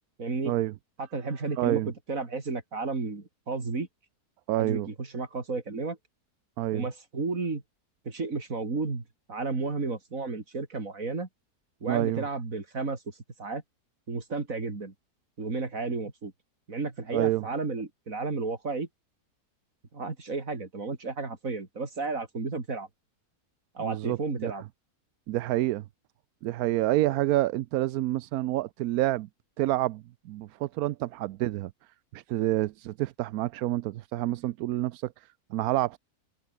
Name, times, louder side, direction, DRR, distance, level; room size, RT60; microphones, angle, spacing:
voice 1, 0.2-0.5 1.1-1.8 2.1-3.9 4.6-6.0 6.7-7.6 8.1-9.0 9.3-11.3 11.8-13.0 13.4-13.6 14.1-14.9 15.4-16.3 16.7-18.9 19.9-22.9 23.7-24.6, right 3 dB, 55° right, 3.6 m, -32 dB
voice 2, 1.6-1.9 4.5-4.9 6.6-6.9 11.9-12.2 17.1-17.5 23.8-24.5 25.3-25.8 26.4-29.3 29.6-31.7 32.1-36.0, right 15 dB, 75° right, 1.0 m, -28 dB
omnidirectional pair, 1.7 m